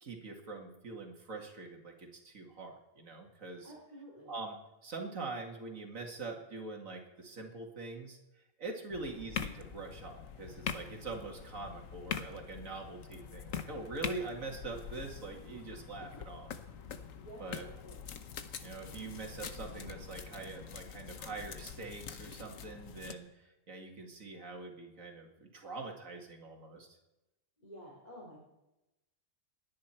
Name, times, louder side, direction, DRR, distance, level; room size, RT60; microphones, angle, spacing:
voice 1, 0.0-3.7 4.3-4.6 4.8-8.2 8.6-16.5 17.4-17.6 18.6-27.0, right 3 dB, 85° right, 2 dB, 2.5 m, -44 dB
voice 2, 3.6-4.3 8.8-9.0 17.2-18.0 27.6-28.4, equal, 30° left, -5 dB, 3.5 m, -51 dB
sound 1, 8.9-23.1, left 7 dB, 90° left, 1.4 m, -44 dB
29.5 x 10.0 x 4.5 m, 0.98 s
omnidirectional pair, 1.4 m